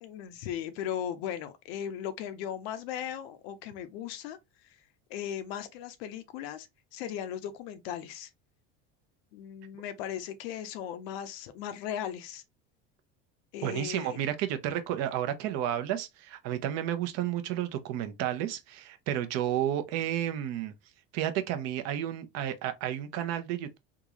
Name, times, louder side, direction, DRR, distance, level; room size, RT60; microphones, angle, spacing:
voice 1, 0.0-4.4 5.1-6.7 6.9-8.3 9.3-12.4 13.5-14.2, left 10 dB, 80° left, 0.7 m, -37 dB
voice 2, 13.6-20.7 21.1-23.8, right 11 dB, 60° right, 0.8 m, -31 dB
3.7 x 2.5 x 2.9 m
cardioid pair, 140°, 29 cm